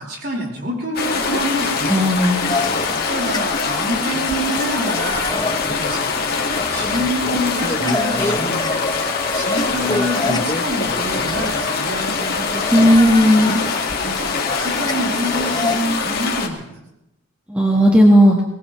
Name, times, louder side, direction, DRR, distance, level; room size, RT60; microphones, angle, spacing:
voice 1, 0.0-1.9 2.9-5.3 5.7-6.2 6.7-8.7 9.3-12.7 13.4-13.6 14.0-16.6, equal, 45° right, -2 dB, 4.9 m, -27 dB
sound 1, 0.9-16.5, left 4 dB, 45° left, 2.0 m, -23 dB
voice 2, 1.9-2.5 12.7-13.5 17.5-18.3, equal, 5° right, -1 dB, 1.5 m, -13 dB
sound 2, 2.5-15.8, left 2 dB, 20° left, 0.9 m, -27 dB
23.0 x 19.0 x 3.2 m, 0.89 s
head